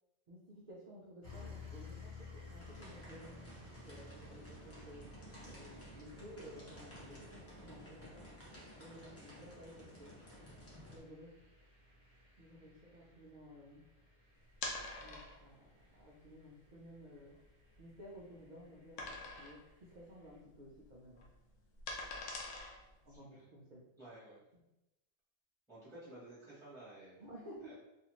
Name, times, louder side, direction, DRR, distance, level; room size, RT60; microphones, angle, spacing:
voice 1, 0.3-5.1 5.4-8.3 8.8-10.1 10.9-11.3 12.4-13.8 15.0-17.3 17.8-21.3 23.1-23.8 24.5-24.6 27.2-27.7, equal, 80° right, -6 dB, 0.4 m, -55 dB
sound 1, 1.2-20.4, left 3 dB, 35° left, 1.0 m, -57 dB
sound 2, 2.6-11.0, equal, 20° left, 0.4 m, -54 dB
sound 3, 14.5-15.5 16.2-16.3 16.8-16.9 17.3-18.3 19.0-19.7 20.0-20.3 20.6-23.1, left 2 dB, 70° left, 0.9 m, -44 dB
voice 2, 23.1-23.4 24.0-24.4 25.7-27.2 27.6-27.7, right 1 dB, 5° left, -8 dB, 0.8 m, -54 dB
2.6 x 2.5 x 3.0 m, 0.96 s
omnidirectional pair, 1.5 m